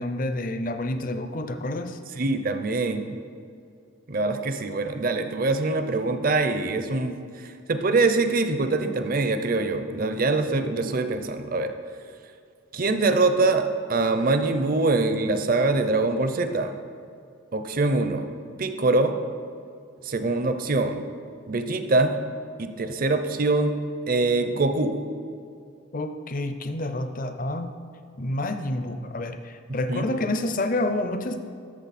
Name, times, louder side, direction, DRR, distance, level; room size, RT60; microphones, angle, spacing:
voice 1, 0.0-2.0 25.9-27.7 28.2-31.4, left 1 dB, 40° left, 8 dB, 0.6 m, -28 dB
voice 2, 2.2-3.1 4.1-11.7 12.7-16.7 17.5-18.3 18.6-19.2 20.0-21.0 21.5-22.1 22.6-23.7 24.1-25.0 29.7-30.1, right 3 dB, 45° right, 8 dB, 0.6 m, -24 dB
13.5 x 6.7 x 4.2 m, 2.4 s
head